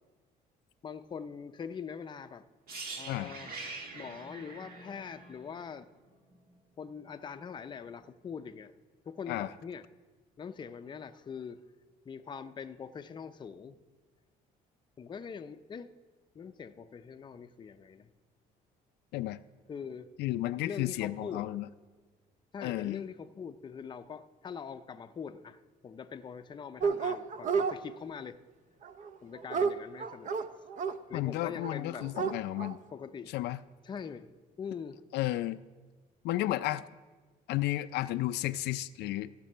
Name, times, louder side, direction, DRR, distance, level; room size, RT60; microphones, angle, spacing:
voice 1, 0.8-2.5 3.0-3.5 3.9-5.9 6.8-8.7 9.1-9.8 10.4-11.6 12.1-13.8 15.0-15.9 16.3-18.1 19.7-20.1 20.6-21.4 22.5-28.4 29.2-30.3 31.1-32.1 32.9-33.3 33.8-34.3 34.6-35.0, left 6 dB, 25° left, 8 dB, 0.5 m, -43 dB
sound 1, 2.7-6.5 6.8-7.0, right 3 dB, 65° right, 1.7 m, -44 dB
voice 2, 20.2-21.7 22.6-23.0 31.1-32.8 33.3-33.6 35.1-35.6 36.2-36.8 37.5-39.3, left 15 dB, 80° left, 12 dB, 0.4 m, -32 dB
Dog, 26.8-27.8 28.8-30.9 31.6-31.7 32.0-32.7, right 5 dB, 50° right, 0.6 m, -31 dB
15.0 x 6.8 x 5.5 m, 1.3 s
cardioid pair, 110°, 17 cm